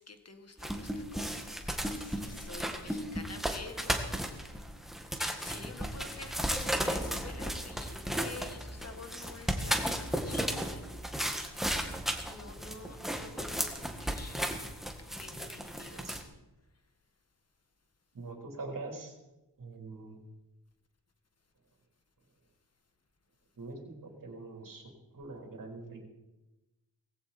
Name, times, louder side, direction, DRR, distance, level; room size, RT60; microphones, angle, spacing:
voice 1, 0.0-4.7 5.2-11.2 12.2-14.5 15.0-16.1, left 3 dB, 35° left, 7 dB, 1.7 m, -49 dB
sound 1, 0.6-16.2, equal, ahead, 1.8 m, -35 dB
voice 2, 18.1-19.1 19.6-20.2 23.6-26.0, right 3 dB, 50° right, 1 dB, 4.0 m, -44 dB
18.5 x 16.5 x 4.4 m, 1.0 s
wide cardioid pair, 110°, 41 cm